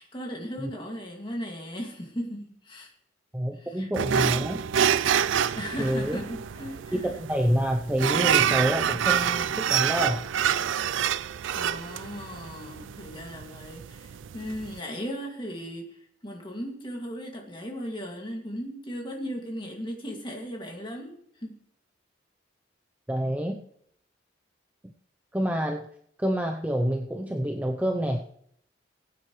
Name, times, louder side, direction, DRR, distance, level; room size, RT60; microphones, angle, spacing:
voice 1, 0.0-2.9 3.5-4.5 5.3-7.0 11.5-21.5, equal, 25° left, 1 dB, 2.2 m, -37 dB
voice 2, 3.3-4.6 5.8-6.2 6.9-10.3 23.1-23.6 25.3-25.8 26.2-28.3, equal, 10° right, 3 dB, 0.6 m, -27 dB
sound 1, 3.9-14.8, right 9 dB, 75° right, 0.4 m, -27 dB
20.5 x 9.1 x 3.2 m, 0.68 s
head